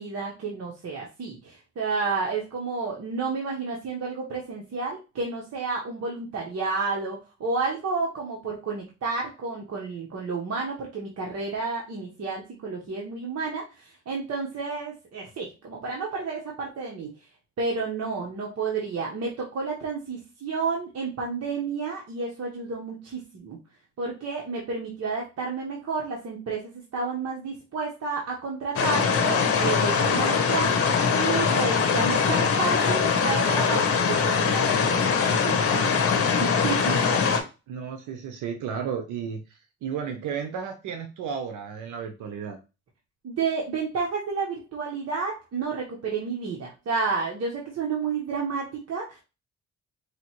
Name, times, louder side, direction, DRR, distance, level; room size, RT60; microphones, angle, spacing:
voice 1, 0.0-17.1 17.6-23.6 24.0-36.0 36.4-37.1 43.2-49.2, right 4 dB, 55° right, -2 dB, 1.2 m, -31 dB
sound 1, 28.7-37.4, left 5 dB, 50° left, 1.0 m, -22 dB
voice 2, 37.7-42.6, right 7 dB, 80° right, 5 dB, 0.7 m, -33 dB
4.9 x 2.8 x 3.0 m, 0.29 s
cardioid pair, 90°, 30 cm